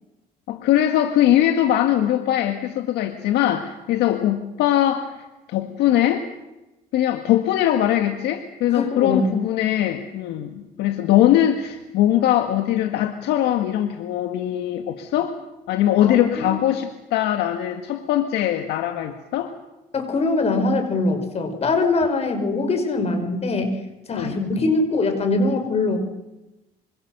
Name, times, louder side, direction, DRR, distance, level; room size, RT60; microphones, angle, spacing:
voice 1, 0.5-6.3 6.9-15.3 15.7-19.5 24.1-24.4, left 12 dB, 85° left, 6 dB, 1.8 m, -21 dB
voice 2, 8.7-9.3 16.1-16.6 19.9-23.7 24.1-26.0, left 3 dB, 40° left, 6 dB, 6.0 m, -22 dB
26.5 x 26.0 x 6.8 m, 1.0 s
cardioid pair, 110°, 17 cm